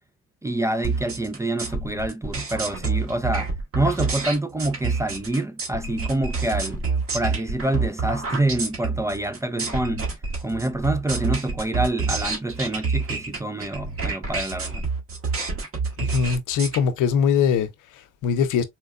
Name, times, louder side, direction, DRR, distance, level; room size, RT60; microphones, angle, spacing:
voice 1, 0.4-3.5 3.7-6.8 7.1-10.1 10.4-14.8, right 1 dB, 10° right, 0.3 m, -26 dB
sound 1, 0.8-16.8, right 4 dB, 45° right, 1.5 m, -28 dB
voice 2, 16.0-18.6, left 7 dB, 90° left, 0.7 m, -22 dB
4.3 x 2.2 x 2.4 m
cardioid pair, 90°, 30 cm